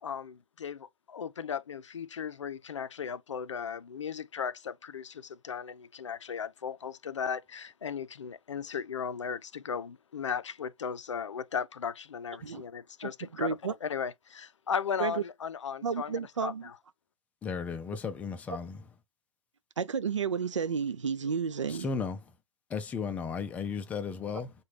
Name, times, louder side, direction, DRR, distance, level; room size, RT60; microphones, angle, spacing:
voice 1, 0.0-16.8, left 7 dB, 80° left, 0.4 m, -36 dB
voice 2, 13.3-13.7 15.0-15.1 15.8-16.7 19.8-21.9, right 6 dB, 85° right, 0.4 m, -31 dB
voice 3, 17.4-18.8 21.7-22.2 22.7-24.5, left 5 dB, 10° left, 0.4 m, -35 dB
3.7 x 2.2 x 3.1 m
figure-of-eight pair, 125°, 15 cm